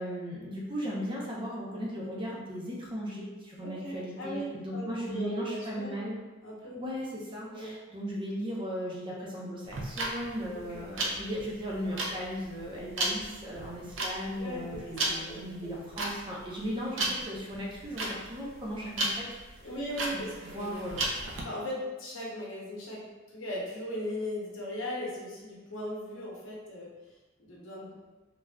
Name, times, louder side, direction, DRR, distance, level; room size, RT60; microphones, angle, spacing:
voice 1, 0.0-6.2 6.8-19.3 20.1-21.1, equal, 25° right, -4 dB, 0.6 m, -37 dB
voice 2, 3.6-6.0 6.4-6.8 7.5-7.7 10.7-10.8 14.3-15.7 19.6-20.9 21.4-23.0 23.3-26.9 27.4-27.9, left 1 dB, 80° left, -5 dB, 0.9 m, -38 dB
sound 1, 9.7-21.4, right 2 dB, 75° right, 0.5 m, -34 dB
3.3 x 2.4 x 2.2 m, 1.2 s
head